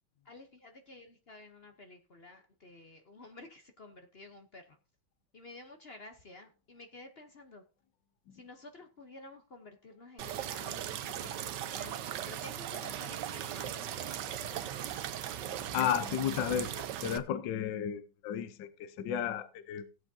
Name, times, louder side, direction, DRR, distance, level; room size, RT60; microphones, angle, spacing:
voice 1, 0.2-4.8 5.3-7.6 8.3-12.0 12.3-14.6, left 2 dB, 45° left, 0.8 m, -52 dB
sound 1, 10.2-17.2, right 10 dB, 70° right, 1.3 m, -38 dB
voice 2, 15.5-19.9, left 9 dB, 70° left, 1.4 m, -33 dB
17.0 x 7.7 x 2.7 m
omnidirectional pair, 2.2 m